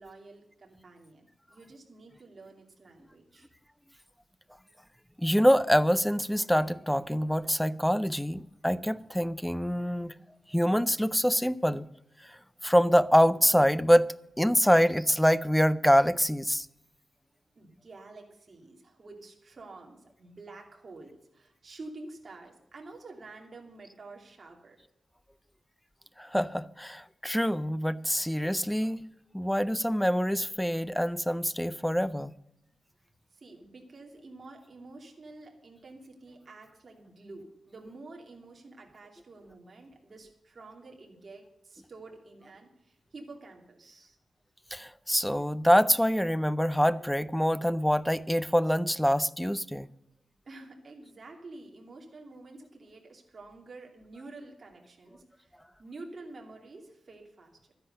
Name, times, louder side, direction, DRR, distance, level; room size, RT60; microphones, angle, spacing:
voice 1, 0.0-3.5 17.5-24.8 33.3-44.2 50.4-57.7, right 2 dB, 35° right, 2.7 m, -49 dB
voice 2, 5.2-10.1 10.5-11.9 12.2-12.4 12.6-14.1 14.4-16.7 26.2-29.0 29.3-32.3 44.7-49.9, equal, 5° left, 0.4 m, -25 dB
12.5 x 10.0 x 6.7 m
wide cardioid pair, 165°, 0 cm